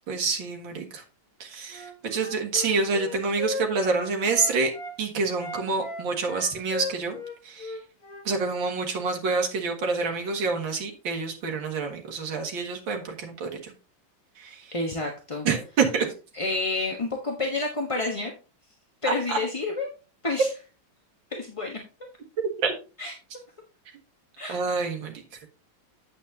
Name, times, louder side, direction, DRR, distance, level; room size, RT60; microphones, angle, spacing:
voice 1, 0.1-1.0 1.4-4.7 5.0-7.2 7.4-7.8 8.3-13.7 14.4-14.7 15.4-16.1 19.3-19.4 22.6-22.7 24.5-25.2, right 4 dB, 65° right, 2 dB, 2.4 m, -27 dB
Wind instrument woodwind instrument, 1.7-5.0 5.3-8.7, left 3 dB, 50° left, 1.8 m, -36 dB
voice 2, 14.7-15.5 16.3-18.3 19.0-19.9 20.2-20.5 21.3-21.8 23.0-23.1 24.4-24.6, left 2 dB, 20° left, 0 dB, 0.9 m, -29 dB
8.6 x 8.3 x 2.7 m, 0.32 s
omnidirectional pair, 2.3 m